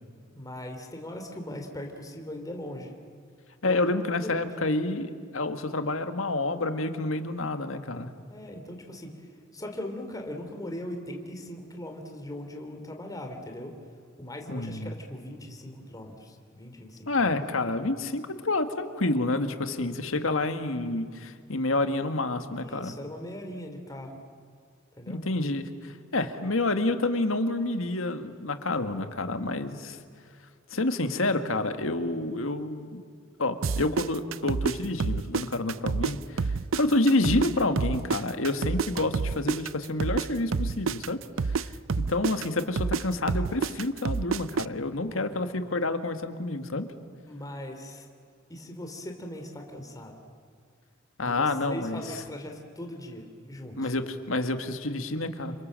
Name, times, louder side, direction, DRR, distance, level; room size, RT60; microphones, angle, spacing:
voice 1, 0.3-2.9 3.6-4.7 8.3-13.7 14.2-17.3 22.5-24.2 25.0-25.2 45.0-45.4 47.3-48.1 48.5-50.1 51.2-53.9, left 1 dB, 20° left, 3 dB, 3.2 m, -40 dB
voice 2, 3.6-8.1 14.5-14.9 17.1-22.9 25.1-30.0 30.7-33.0 33.4-41.2 41.5-41.7 42.0-46.9 51.2-52.0 53.8-55.5, left 2 dB, 85° left, 8 dB, 1.8 m, -28 dB
sound 1, 33.6-36.1 36.4-40.3 40.5-44.7, right 5 dB, 80° right, 0.6 m, -28 dB
28.5 x 25.5 x 7.6 m, 2.1 s
head